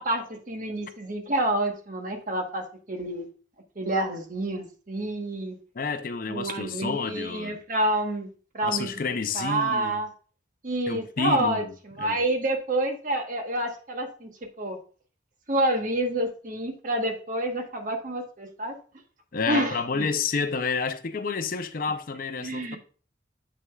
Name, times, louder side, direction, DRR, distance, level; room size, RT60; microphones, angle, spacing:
voice 1, 0.0-3.3 3.8-5.6 6.3-8.3 8.5-8.9 9.3-10.1 10.6-11.6 12.0-14.3 14.6-14.8 15.5-18.7 19.5-20.0 22.4-22.8, right 1 dB, 45° right, 1.1 m, -28 dB
voice 2, 5.7-7.6 8.6-10.0 10.9-11.7 12.0-12.2 19.3-22.8, left 5 dB, 50° left, 0.5 m, -29 dB
7.6 x 6.3 x 2.3 m
head